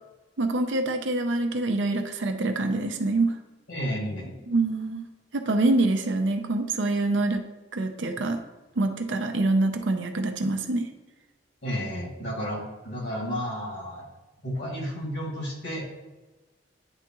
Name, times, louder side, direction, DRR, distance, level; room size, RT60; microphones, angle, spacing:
voice 1, 0.4-3.3 4.5-5.0 5.3-7.4 7.7-8.4 8.8-10.9, right 2 dB, 75° right, 5 dB, 0.6 m, -25 dB
voice 2, 3.7-4.3 11.6-14.0 14.4-15.9, equal, 70° left, -3 dB, 2.1 m, -32 dB
9.7 x 3.5 x 3.0 m, 1.2 s
head